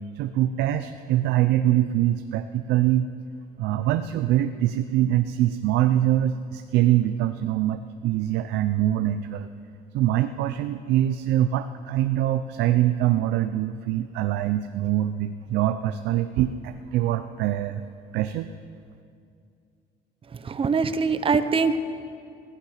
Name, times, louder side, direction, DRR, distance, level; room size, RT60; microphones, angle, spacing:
voice 1, 0.1-3.1 3.6-9.5 9.9-17.8 18.1-18.5, right 13 dB, 85° right, 9 dB, 0.6 m, -24 dB
voice 2, 20.4-21.8, right 5 dB, 30° right, 11 dB, 0.9 m, -23 dB
16.5 x 15.0 x 5.8 m, 2.4 s
cardioid pair, 110°, 17 cm